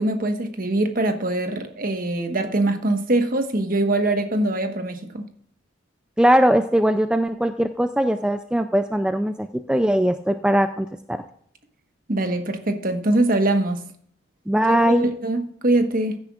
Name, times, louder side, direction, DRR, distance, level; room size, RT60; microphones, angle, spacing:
voice 1, 0.0-5.2 12.1-13.9 14.7-16.2, right 2 dB, 45° right, 1.3 m, -23 dB
voice 2, 6.2-11.2 14.5-15.0, equal, 5° right, 0.4 m, -20 dB
16.0 x 9.7 x 2.4 m
head